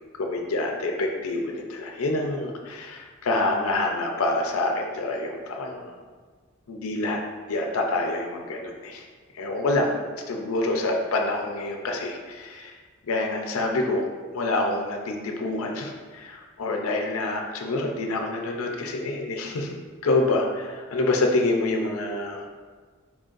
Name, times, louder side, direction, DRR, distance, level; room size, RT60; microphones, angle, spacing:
voice 1, 0.2-5.9 6.7-7.2 7.5-9.1 9.3-10.0 10.3-12.8 13.1-14.1 14.3-19.8 20.0-22.5, left 2 dB, 85° left, 2 dB, 0.5 m, -27 dB
4.7 x 3.8 x 2.5 m, 1.5 s
head